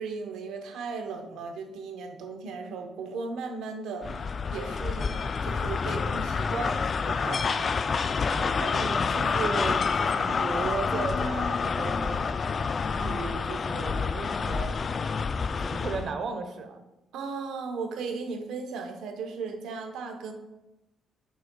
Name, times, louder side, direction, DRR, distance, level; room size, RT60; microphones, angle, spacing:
voice 1, 0.0-7.7 17.1-20.3, right 4 dB, 85° right, 5 dB, 0.9 m, -36 dB
sound 1, 4.0-16.1, left 5 dB, 45° left, 0.3 m, -28 dB
voice 2, 8.3-12.2 13.0-14.8 15.6-16.8, right 4 dB, 60° right, 7 dB, 0.9 m, -35 dB
9.0 x 6.5 x 2.3 m, 0.99 s
cardioid pair, 90°, 0 cm